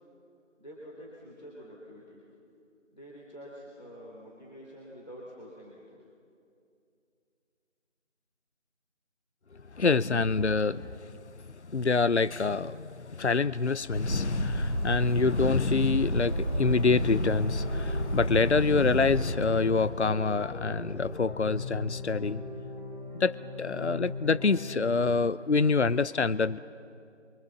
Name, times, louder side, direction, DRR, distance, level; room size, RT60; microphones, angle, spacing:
voice 1, 0.6-2.2 2.9-6.0, equal, 35° left, 3.3 m, -47 dB
voice 2, 9.7-11.0 11.7-22.4 23.1-26.6, left 4 dB, 65° left, 0.6 m, -26 dB
sound 1, 13.9-19.2, right 1 dB, 20° right, 5.8 m, -31 dB
sound 2, 16.1-25.1, left 2 dB, ahead, 5.4 m, -40 dB
25.5 x 24.5 x 7.2 m
figure-of-eight pair, 180°, 37 cm